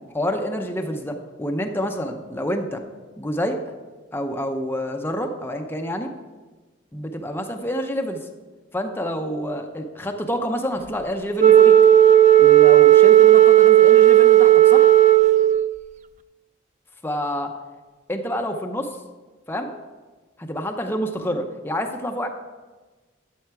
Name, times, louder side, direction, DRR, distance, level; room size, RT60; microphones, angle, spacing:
voice 1, 0.1-2.8 3.2-3.6 4.1-6.1 6.9-8.3 8.7-11.8 12.4-14.9 17.0-17.5 18.1-19.0 19.5-19.7 20.4-22.3, equal, 10° left, 4 dB, 0.7 m, -28 dB
Wind instrument woodwind instrument, 11.4-15.8, right 12 dB, 35° right, 0.3 m, -12 dB
13.5 x 7.8 x 4.7 m, 1.3 s
head